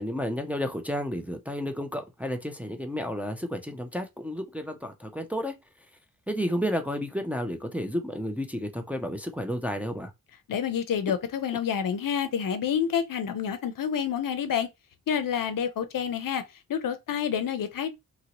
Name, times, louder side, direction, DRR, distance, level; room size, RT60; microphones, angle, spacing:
voice 1, 0.0-5.5 6.3-10.1, equal, 5° right, 0.5 m, -31 dB
voice 2, 10.5-14.7 15.1-16.4 16.7-17.9, left 8 dB, 65° left, 0.6 m, -28 dB
2.9 x 2.7 x 2.9 m
wide cardioid pair, 95°, 36 cm